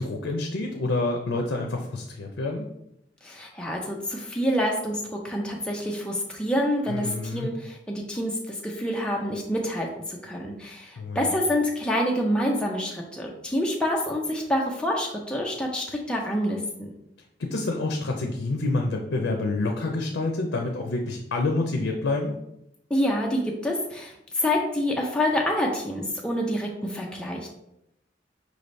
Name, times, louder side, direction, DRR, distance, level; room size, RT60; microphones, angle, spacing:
voice 1, 0.0-2.7 6.9-7.5 11.0-11.4 17.4-22.4, left 2 dB, 90° left, 2 dB, 0.5 m, -28 dB
voice 2, 3.2-16.9 22.9-27.5, left 1 dB, 5° left, -1 dB, 0.4 m, -27 dB
5.0 x 3.2 x 2.6 m, 0.82 s
head